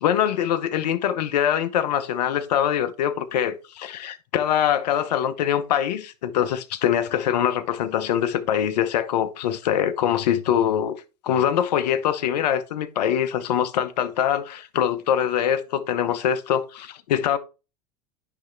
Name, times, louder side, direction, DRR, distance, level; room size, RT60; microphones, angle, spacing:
voice 1, 0.0-11.0 11.2-17.4, left 9 dB, 80° left, 0.9 m, -23 dB
9.9 x 3.4 x 3.2 m
hypercardioid pair, 105°, 21 cm